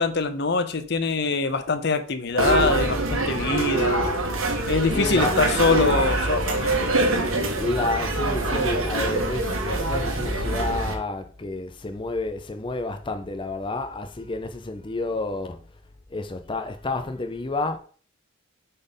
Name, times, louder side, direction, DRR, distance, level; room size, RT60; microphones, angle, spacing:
voice 1, 0.0-4.1 4.7-6.8, left 4 dB, 55° left, 0.7 m, -24 dB
sound 1, 2.4-10.9, right 2 dB, 80° right, 1.4 m, -24 dB
voice 2, 4.9-5.4 7.5-15.7 16.1-17.8, left 2 dB, 25° left, 0.5 m, -30 dB
5.2 x 4.3 x 5.2 m
head